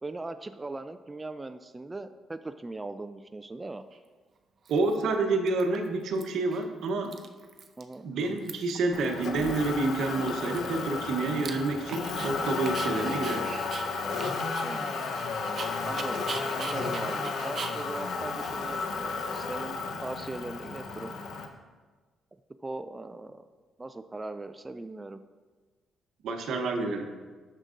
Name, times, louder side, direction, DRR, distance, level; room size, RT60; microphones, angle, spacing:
voice 1, 0.0-3.8 7.8-8.1 14.6-15.1 15.8-16.3 16.5-21.2 22.6-23.4 23.8-25.2, right 2 dB, 20° right, 9 dB, 0.3 m, -39 dB
Dog, 3.9-4.0 4.7-5.1 5.5-6.2 6.5-6.6 6.9-7.9 8.2-8.9 9.2-9.3 9.6-12.3 12.7-19.3, right 5 dB, 50° right, 0.7 m, -42 dB
voice 2, 4.7-7.1 8.0-13.6 26.2-27.1, right 3 dB, 75° right, 4 dB, 0.9 m, -28 dB
Motor vehicle (road), 8.9-21.5, left 4 dB, 75° left, 0.8 m, -33 dB
9.7 x 6.6 x 2.5 m, 1.4 s
cardioid pair, 90°, 0 cm